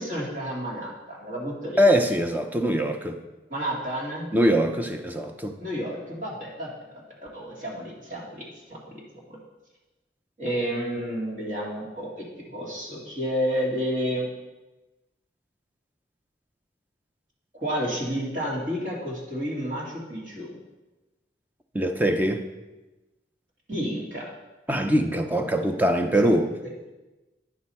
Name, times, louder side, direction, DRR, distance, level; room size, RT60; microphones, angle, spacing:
voice 1, 0.0-1.8 3.5-4.3 5.6-6.7 7.3-8.4 8.7-8.8 10.4-14.3 17.5-20.5 23.7-24.2 26.6-26.7, equal, 45° right, 2.2 m, -30 dB
voice 2, 1.8-3.2 4.3-5.6 21.7-22.4 24.7-26.5, equal, 10° right, 0.5 m, -22 dB
9.4 x 6.2 x 4.3 m
head